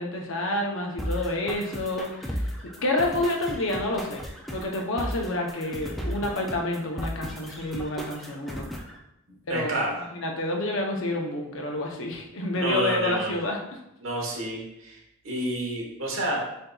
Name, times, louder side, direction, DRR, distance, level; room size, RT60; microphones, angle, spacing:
voice 1, 0.0-2.5 2.8-4.2 4.5-8.7 9.5-9.8 10.1-13.6, left 1 dB, 60° left, 1 dB, 0.7 m, -28 dB
sound 1, 1.0-9.0, equal, ahead, 0.3 m, -35 dB
voice 2, 9.5-10.0 12.5-13.3 14.0-15.0 15.2-16.4, right 1 dB, 65° right, -2 dB, 1.2 m, -29 dB
7.5 x 2.7 x 2.3 m, 0.84 s
head